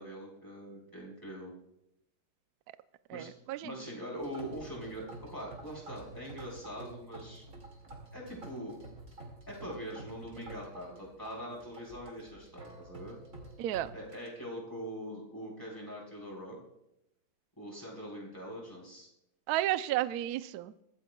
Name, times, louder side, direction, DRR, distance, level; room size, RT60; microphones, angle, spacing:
voice 1, 0.0-1.5 3.1-3.3 3.6-5.0 5.3-7.4 8.1-8.8 9.5-13.2 13.9-16.6 17.6-19.1, equal, 10° left, -3 dB, 4.2 m, -43 dB
voice 2, 3.1-3.6 13.6-13.9 19.5-20.7, right 14 dB, 85° right, 14 dB, 0.8 m, -32 dB
sound 1, 4.2-14.3, right 2 dB, 40° right, 2.6 m, -49 dB
23.0 x 14.5 x 2.3 m, 0.84 s
omnidirectional pair, 2.2 m